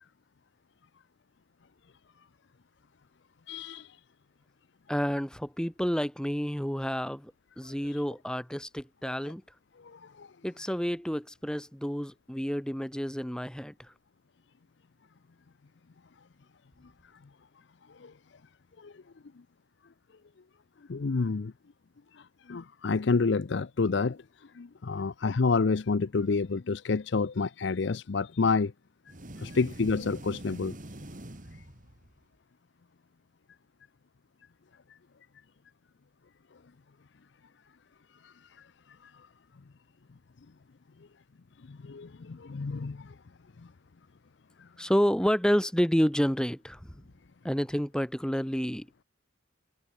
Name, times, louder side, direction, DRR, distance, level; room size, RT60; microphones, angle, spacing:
voice 1, 3.5-4.0 7.9-8.0 9.8-10.3 18.0-18.1 18.8-18.9 20.9-21.5 22.1-24.2 24.5-28.7 29.4-30.7 38.2-38.7 39.0-39.1 41.7-43.1 44.6-44.7, left 4 dB, 60° left, 0.5 m, -29 dB
voice 2, 4.9-9.4 10.4-13.9 44.8-46.9 47.4-49.0, equal, 5° left, 1.4 m, -29 dB
sound 1, 29.1-32.2, right 1 dB, 40° right, 2.4 m, -44 dB
head